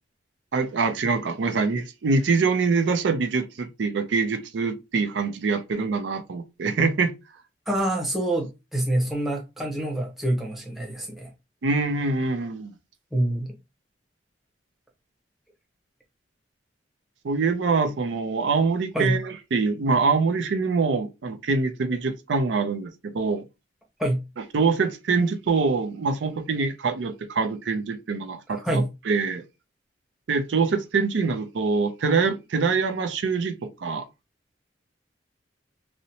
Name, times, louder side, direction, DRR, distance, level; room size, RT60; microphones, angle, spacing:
voice 1, 0.5-7.1 11.6-12.7 17.2-23.4 24.5-29.4 30.3-34.0, right 4 dB, 85° right, 0.4 m, -24 dB
voice 2, 7.7-11.3 13.1-13.5 18.9-19.2 24.0-24.2 28.5-28.9, right 1 dB, ahead, 0.7 m, -26 dB
2.7 x 2.0 x 2.8 m
head